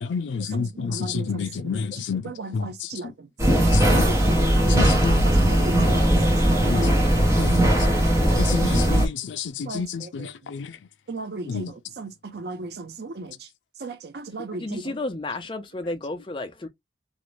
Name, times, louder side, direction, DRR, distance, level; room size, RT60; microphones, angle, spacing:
voice 1, 0.0-2.2 2.5-2.7 3.7-4.0 4.7-5.2 6.7-6.9 7.4-7.6 8.4-10.7 11.5-11.7, left 5 dB, 85° left, 0.4 m, -29 dB
voice 2, 0.5-3.3 3.9-6.9 9.7-10.5 11.1-13.5 13.8-15.0, right 3 dB, 60° right, 0.5 m, -37 dB
sound 1, 3.4-9.1, right 1 dB, 15° right, 0.7 m, -19 dB
voice 3, 14.6-16.7, left 2 dB, 25° left, 0.5 m, -32 dB
2.5 x 2.1 x 3.1 m
head